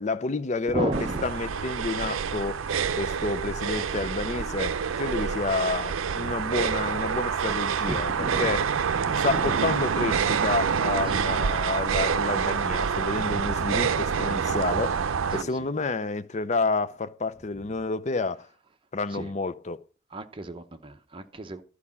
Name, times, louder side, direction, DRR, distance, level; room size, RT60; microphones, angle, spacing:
voice 1, 0.0-0.9 1.2-2.7 3.0-8.7 9.1-15.0 15.3-18.5 18.9-19.8, left 3 dB, 35° left, 0.5 m, -29 dB
voice 2, 0.7-1.2 7.8-9.5 11.1-11.3 15.3-15.7 19.1-19.3 20.1-21.6, right 1 dB, 25° right, 0.8 m, -34 dB
sound 1, 0.9-15.4, right 6 dB, 90° right, 0.5 m, -27 dB
12.0 x 4.8 x 7.2 m
head